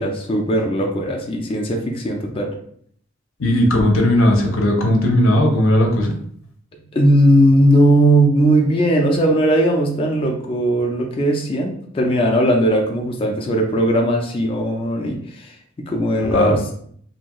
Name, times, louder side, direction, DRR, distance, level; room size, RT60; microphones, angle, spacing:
voice 1, 0.0-2.5 6.9-15.5 15.9-16.6, right 1 dB, 25° left, 0 dB, 0.4 m, -18 dB
voice 2, 3.4-6.1 16.3-16.5, left 1 dB, 85° left, 1 dB, 0.7 m, -16 dB
2.6 x 2.3 x 2.9 m, 0.62 s
head